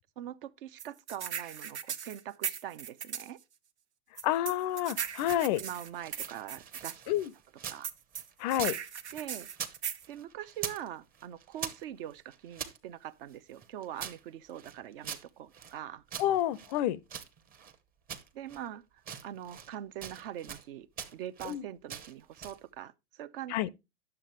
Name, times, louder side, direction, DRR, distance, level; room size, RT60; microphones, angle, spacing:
voice 1, 0.2-3.4 5.6-7.0 7.7-7.9 9.1-9.5 10.1-16.0 18.3-20.9 21.1-23.7, right 11 dB, 55° right, 0.7 m, -43 dB
sound 1, 0.8-3.3 4.2-7.0 7.8-10.1, right 8 dB, 90° right, 0.8 m, -38 dB
voice 2, 4.2-5.6 7.1-7.3 8.4-8.8 16.2-17.0 21.4-21.6 23.5-23.7, left 13 dB, 40° left, 0.4 m, -29 dB
sound 2, 5.0-7.9 8.1-9.8 10.0-10.9 11.1-12.8 13.3-15.8 16.1-17.8 18.1-18.7 19.0-19.8 20.0-20.7 21.0-21.6 21.9-22.6, right 7 dB, 25° right, 1.0 m, -43 dB
9.8 x 6.7 x 3.1 m
hypercardioid pair, 115°, 33 cm